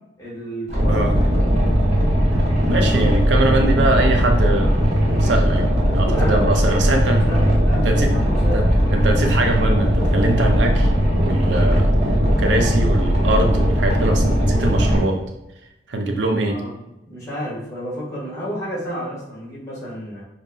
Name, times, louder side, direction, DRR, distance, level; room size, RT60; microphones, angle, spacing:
voice 1, 0.2-1.0 6.0-8.6 16.5-16.8 17.1-20.2, equal, 20° left, -6 dB, 1.3 m, -31 dB
Boat Water vehicle, 0.7-15.0, equal, 35° right, 0.8 m, -18 dB
voice 2, 2.7-4.8 5.2-7.2 7.7-8.1 8.4-10.9 11.2-11.9 12.3-15.2 15.9-16.6, right 2 dB, 75° right, 3 dB, 0.5 m, -22 dB
5.3 x 2.1 x 2.6 m, 0.92 s
head